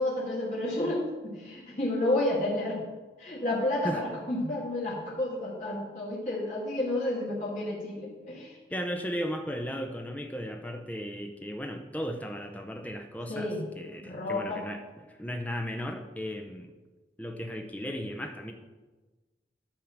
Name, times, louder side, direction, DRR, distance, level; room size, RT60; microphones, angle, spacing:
voice 1, 0.0-2.8 3.2-8.6 13.3-13.6 14.0-14.6, left 1 dB, 40° left, -7 dB, 2.2 m, -31 dB
voice 2, 8.7-16.7 17.2-18.5, equal, 10° left, 4 dB, 0.6 m, -36 dB
10.5 x 3.7 x 7.1 m, 1.3 s
head